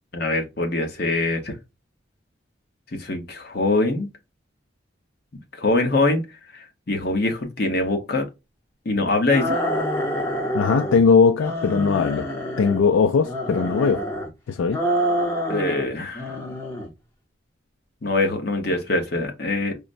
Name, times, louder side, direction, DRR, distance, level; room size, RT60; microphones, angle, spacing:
voice 1, 0.1-1.6 2.9-4.1 5.6-6.2 6.5-8.3 8.8-9.6 15.5-16.4 18.0-19.8, left 2 dB, 55° left, 0.8 m, -23 dB
sound 1, 9.3-11.0 11.4-12.8 13.2-14.3 14.7-15.9 16.1-16.9, equal, 15° left, 0.7 m, -27 dB
voice 2, 10.5-12.3 12.6-14.0 14.5-14.8, left 5 dB, 85° left, 0.4 m, -19 dB
4.9 x 2.1 x 2.5 m
head